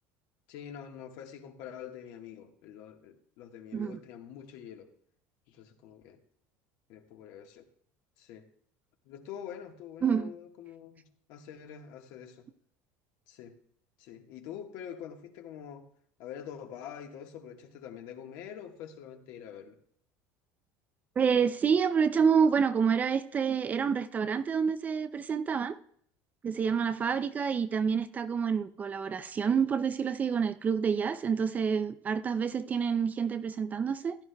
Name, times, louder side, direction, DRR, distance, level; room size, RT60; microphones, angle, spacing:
voice 1, 0.5-4.9 5.5-6.2 6.9-7.7 8.2-8.5 9.0-12.5 13.3-13.6 14.0-15.9 16.2-19.8, left 9 dB, 70° left, 1.5 m, -45 dB
voice 2, 10.0-10.3 21.2-25.8 26.4-34.2, right 6 dB, 25° right, 0.4 m, -28 dB
15.5 x 11.0 x 2.3 m
cardioid pair, 135°, 6 cm